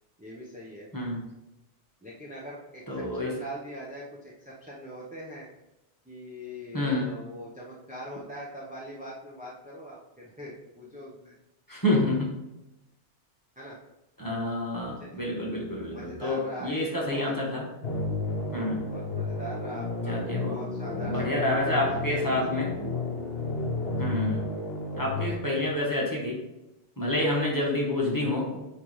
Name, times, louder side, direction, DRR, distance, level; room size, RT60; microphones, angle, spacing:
voice 1, 0.2-0.9 2.0-5.5 6.0-11.4 13.6-13.8 15.0-15.2 15.8-17.3 18.8-22.6, equal, 5° right, -6 dB, 0.9 m, -42 dB
voice 2, 2.9-3.3 6.7-7.1 11.7-12.3 14.2-17.7 18.5-18.8 20.1-20.6 21.0-22.8 24.0-24.4 25.0-26.4 27.0-28.6, left 1 dB, 15° left, -4 dB, 1.5 m, -28 dB
sound 1, 17.8-25.3, left 3 dB, 60° left, 1.1 m, -32 dB
9.3 x 3.4 x 3.2 m, 0.96 s
omnidirectional pair, 1.2 m